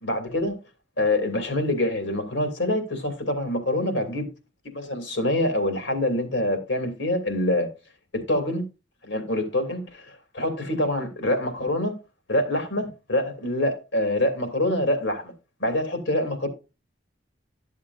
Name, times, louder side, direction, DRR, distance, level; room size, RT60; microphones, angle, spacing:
voice 1, 0.0-0.6 1.0-4.3 4.6-7.7 8.1-8.6 9.0-12.0 12.3-15.3 15.6-16.5, left 1 dB, 90° left, 2.6 m, -25 dB
12.5 x 7.3 x 2.6 m
head